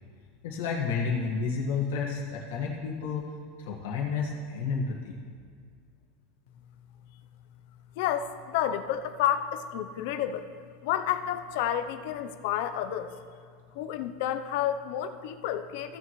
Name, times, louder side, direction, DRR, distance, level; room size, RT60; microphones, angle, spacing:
voice 1, 0.4-3.2 3.7-5.2, left 5 dB, 80° left, -3 dB, 1.5 m, -30 dB
voice 2, 8.0-10.5 10.8-13.1 13.8-16.0, left 10 dB, 55° left, 9 dB, 0.6 m, -30 dB
16.0 x 7.0 x 3.1 m, 2.1 s
supercardioid pair, 170°, 0 cm